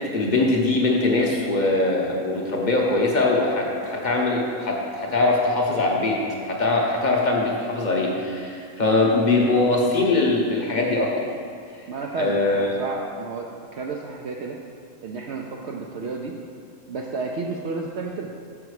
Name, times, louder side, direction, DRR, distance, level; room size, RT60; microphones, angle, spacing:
voice 1, 0.0-11.2 11.8-11.9 12.2-12.7, left 2 dB, 40° left, -2 dB, 0.7 m, -22 dB
voice 2, 11.9-14.6 15.0-16.4 16.9-18.3, right 4 dB, 85° right, 0 dB, 0.6 m, -31 dB
6.8 x 5.6 x 4.7 m, 2.3 s
omnidirectional pair, 1.7 m